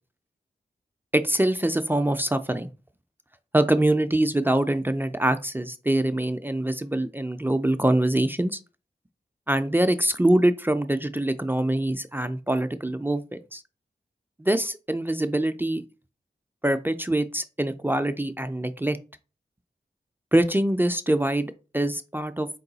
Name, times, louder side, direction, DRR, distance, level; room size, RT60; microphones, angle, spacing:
voice 1, 1.1-2.7 3.5-8.6 9.5-13.6 14.4-15.8 16.6-19.0 20.3-22.6, right 1 dB, 10° right, 9 dB, 0.3 m, -24 dB
4.7 x 2.2 x 3.9 m, 0.31 s
wide cardioid pair, 80°, 17 cm